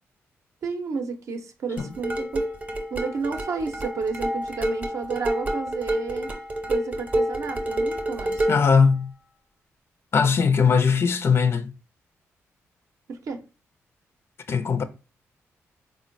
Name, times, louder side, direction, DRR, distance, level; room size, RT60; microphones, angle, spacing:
voice 1, 0.6-2.4 2.9-6.3 6.7-8.5 13.1-13.4, right 5 dB, 65° right, 0.5 m, -31 dB
sound 1, 1.8-8.7, right 1 dB, 30° right, 0.7 m, -28 dB
voice 2, 8.5-9.1 10.1-11.7 14.5-14.8, left 5 dB, 50° left, 0.4 m, -20 dB
3.7 x 2.1 x 2.5 m
cardioid pair, 65°, 6 cm